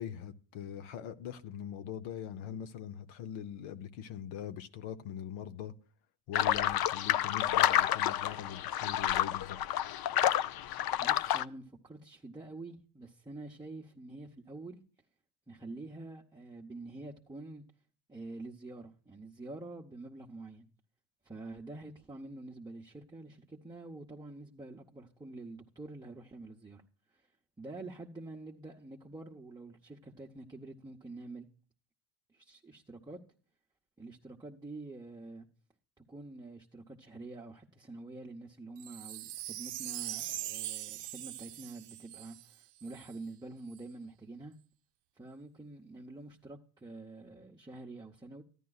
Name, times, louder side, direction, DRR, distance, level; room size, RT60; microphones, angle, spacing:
voice 1, 0.0-5.7 6.3-9.8, left 9 dB, 80° left, 0.8 m, -42 dB
sound 1, 6.3-11.4, left 12 dB, 50° left, 0.5 m, -29 dB
voice 2, 11.0-14.8 15.5-17.6 18.1-20.7 21.2-26.8 27.1-27.2 27.6-31.5 32.3-33.2 34.0-35.5 36.0-44.5 45.2-48.4, right 2 dB, 10° right, 0.8 m, -47 dB
Wind chime, 38.8-43.1 43.7-43.8, right 14 dB, 60° right, 0.6 m, -41 dB
13.5 x 11.0 x 2.3 m
cardioid pair, 110°, 48 cm